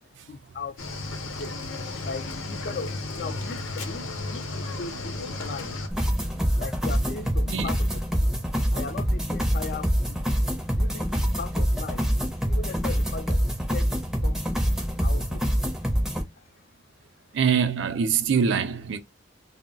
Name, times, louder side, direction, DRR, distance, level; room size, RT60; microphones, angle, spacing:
voice 1, 0.3-0.8 1.2-1.6 2.0-5.8 6.6-8.3 8.7-10.2 10.8-12.1 12.5-14.0 14.2-14.6 15.0-15.6 16.4-16.5, left 4 dB, 50° left, 0.4 m, -38 dB
Cricket / Waves surf, 0.8-5.9, left 2 dB, 90° left, 0.7 m, -34 dB
sound 1, 5.9-16.2, equal, ahead, 0.5 m, -25 dB
voice 2, 17.3-19.0, right 6 dB, 65° right, 0.4 m, -23 dB
2.2 x 2.0 x 3.7 m
head